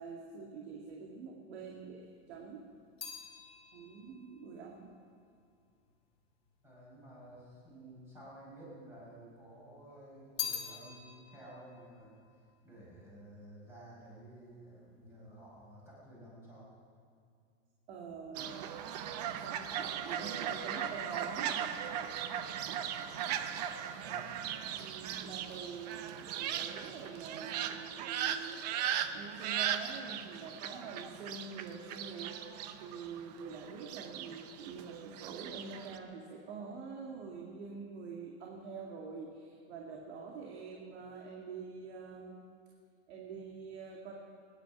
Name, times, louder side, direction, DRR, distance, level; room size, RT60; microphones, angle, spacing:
voice 1, 0.0-2.6 3.7-4.9 17.9-18.7 19.4-21.6 22.7-22.9 24.8-28.9 29.1-42.5 43.1-44.1, right 5 dB, 65° right, -1 dB, 2.1 m, -46 dB
sound 1, 2.0-6.4 7.2-8.0 8.3-9.5 9.8-13.3 13.6-14.1, left 8 dB, 15° left, 1.7 m, -45 dB
voice 2, 6.6-12.2 12.6-16.7 23.3-24.3, right 1 dB, 5° right, -6 dB, 4.8 m, -53 dB
Fowl, 18.3-36.0, right 9 dB, 35° right, 0.6 m, -38 dB
22.0 x 10.5 x 6.0 m, 2.3 s
supercardioid pair, 180°, 35 cm